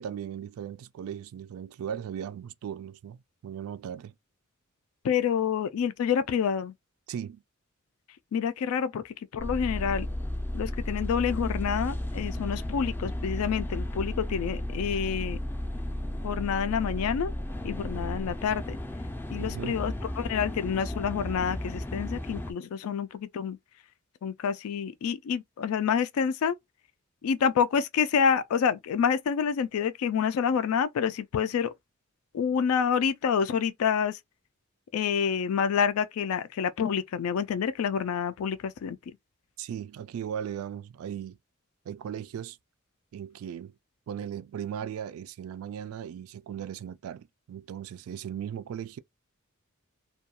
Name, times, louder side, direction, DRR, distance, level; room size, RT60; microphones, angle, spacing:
voice 1, 0.0-4.1 7.1-7.4 19.3-19.9 39.6-41.4 41.9-42.6 43.1-43.7 44.1-49.0, right 9 dB, 75° right, 0.3 m, -37 dB
voice 2, 5.0-6.7 8.3-10.1 10.5-15.4 16.2-17.3 17.6-18.8 19.3-23.6 24.2-26.6 27.2-31.7 32.3-34.2 34.9-39.0, left 7 dB, 90° left, 0.3 m, -28 dB
sound 1, 9.4-22.5, left 1 dB, 10° left, 0.3 m, -34 dB
2.3 x 2.3 x 2.7 m
head